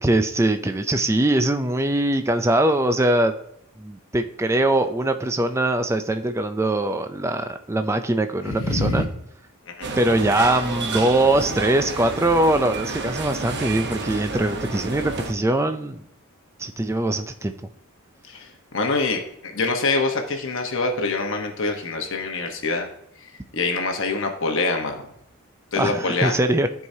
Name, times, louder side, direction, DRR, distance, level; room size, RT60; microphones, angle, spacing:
voice 1, 0.0-3.3 3.8-9.0 10.0-16.0 16.6-17.5 25.8-26.7, right 1 dB, 10° right, 8 dB, 0.4 m, -22 dB
voice 2, 8.5-9.1 9.7-9.9 18.3-22.9 23.2-25.0 25.7-26.3, left 3 dB, 60° left, 3 dB, 1.0 m, -25 dB
sound 1, 9.8-15.3, right 3 dB, 50° right, 1.0 m, -30 dB
13.5 x 4.7 x 2.7 m, 0.74 s
head